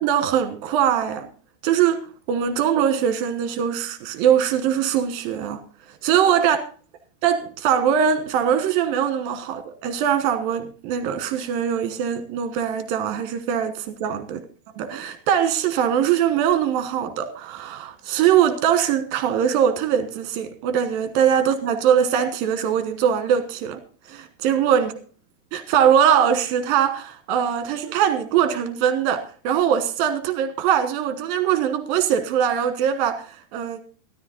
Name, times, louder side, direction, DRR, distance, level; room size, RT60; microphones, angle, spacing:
voice 1, 0.0-1.3 1.6-2.0 2.3-5.6 6.0-6.6 7.2-14.4 14.8-23.8 24.1-24.9 25.5-33.8, right 9 dB, 70° right, 2.9 m, -21 dB
13.5 x 13.0 x 4.0 m
omnidirectional pair, 4.7 m